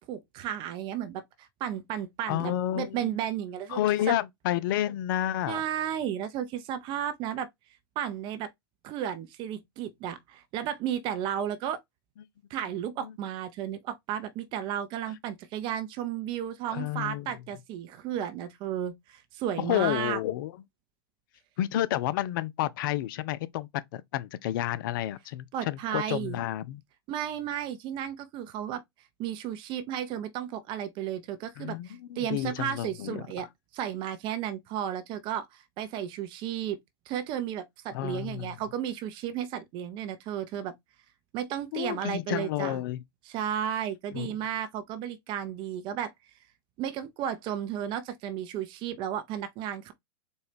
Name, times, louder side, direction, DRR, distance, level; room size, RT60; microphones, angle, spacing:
voice 1, 0.1-3.8 4.1-4.2 5.5-7.5 8.0-8.5 8.8-11.8 12.5-20.2 25.5-26.4 27.1-28.8 29.2-33.5 33.7-36.8 37.1-40.7 41.3-42.8 43.3-46.1 46.8-49.9, right 10 dB, 40° right, 0.6 m, -33 dB
voice 2, 2.3-3.1 3.7-5.6 13.0-13.1 16.7-17.3 19.6-20.5 21.6-26.8 31.6-33.2 37.9-38.5 41.7-43.0 44.1-44.3, left 13 dB, 60° left, 0.4 m, -30 dB
4.2 x 2.3 x 3.4 m
hypercardioid pair, 110°, 13 cm